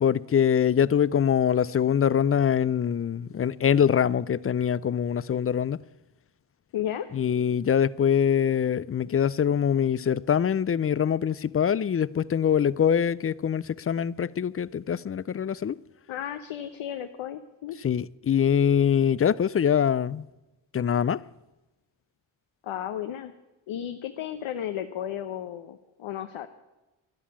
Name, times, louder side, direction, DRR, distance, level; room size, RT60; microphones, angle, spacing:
voice 1, 0.0-5.8 7.1-15.8 17.8-20.2 20.7-21.2, left 8 dB, 30° left, 0.4 m, -24 dB
voice 2, 6.7-7.1 16.1-17.8 22.6-23.3 23.7-26.5, left 10 dB, 85° left, 1.0 m, -34 dB
13.0 x 11.0 x 8.7 m
cardioid pair, 70°, 48 cm